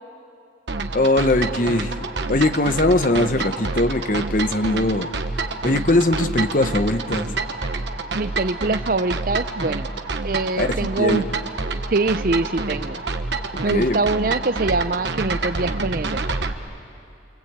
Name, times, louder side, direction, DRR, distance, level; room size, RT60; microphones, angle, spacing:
sound 1, 0.7-16.5, right 3 dB, 75° right, 1.3 m, -28 dB
voice 1, 0.9-1.9 2.3-5.1 5.6-7.3 10.6-11.2 13.7-14.0, left 2 dB, 45° left, 9 dB, 1.0 m, -20 dB
voice 2, 8.1-9.9 10.2-11.2 11.9-13.0 13.6-16.3, right 3 dB, 50° right, 13 dB, 0.6 m, -24 dB
27.0 x 24.5 x 8.8 m, 2.5 s
head